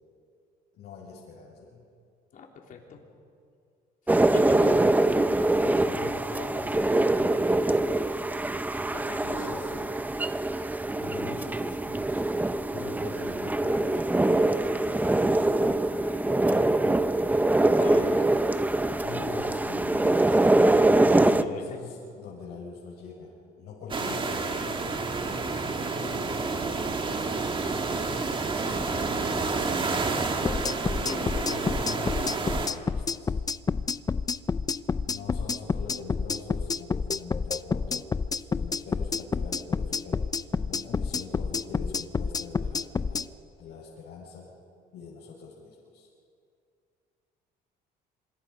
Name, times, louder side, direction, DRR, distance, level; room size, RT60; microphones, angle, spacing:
voice 1, 0.8-1.8 4.4-8.2 9.2-9.9 11.0-12.3 12.7-14.4 14.7-15.5 19.0-20.8 21.2-27.5 28.9-30.7 31.2-33.3 35.1-38.0 38.3-43.3 43.6-44.5 44.9-46.1, left 4 dB, 80° left, -6 dB, 6.3 m, -43 dB
voice 2, 2.3-3.0 4.3-4.6 8.9-9.5 17.7-18.1 21.1-21.8 31.0-31.4, left 6 dB, 55° left, 1 dB, 3.7 m, -41 dB
sound 1, 4.1-21.4, right 2 dB, 10° right, 0.8 m, -24 dB
sound 2, 23.9-32.7, right 4 dB, 30° right, 2.2 m, -29 dB
sound 3, 30.4-43.3, left 5 dB, 20° left, 0.6 m, -29 dB
27.0 x 25.5 x 5.4 m, 2.3 s
cardioid pair, 110°, 17 cm